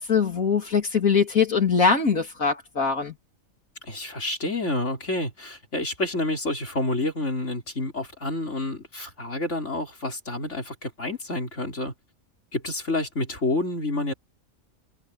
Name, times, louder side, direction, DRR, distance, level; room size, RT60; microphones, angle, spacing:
voice 1, 0.0-3.2, left 5 dB, 75° left, 3.5 m, -22 dB
voice 2, 3.8-11.9 12.5-14.1, left 2 dB, 60° left, 4.8 m, -29 dB
omnidirectional pair, 1.4 m